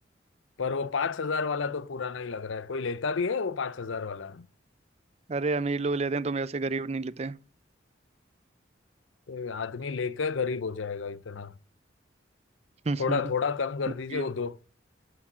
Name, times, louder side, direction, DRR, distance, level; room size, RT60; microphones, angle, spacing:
voice 1, 0.6-4.5 9.3-11.5 13.0-14.6, left 5 dB, 85° left, 0.6 m, -31 dB
voice 2, 5.3-7.4 12.9-13.2 14.1-14.2, right 3 dB, 35° right, 0.5 m, -29 dB
11.5 x 6.4 x 6.1 m
head